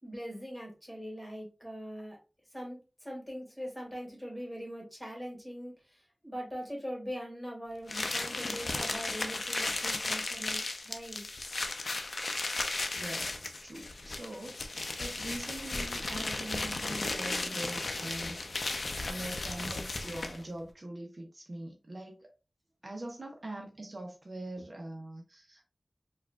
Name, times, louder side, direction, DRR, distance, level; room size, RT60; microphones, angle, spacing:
voice 1, 0.0-2.2 2.5-2.8 3.0-5.7 6.2-11.2, equal, 5° left, 1.9 m, -41 dB
sound 1, 7.9-20.5, left 2 dB, 75° left, 0.5 m, -35 dB
voice 2, 12.9-13.4 13.6-18.4 19.0-22.2 22.8-25.6, right 1 dB, 55° right, 0.8 m, -43 dB
4.6 x 2.4 x 2.3 m
wide cardioid pair, 60°, 0 cm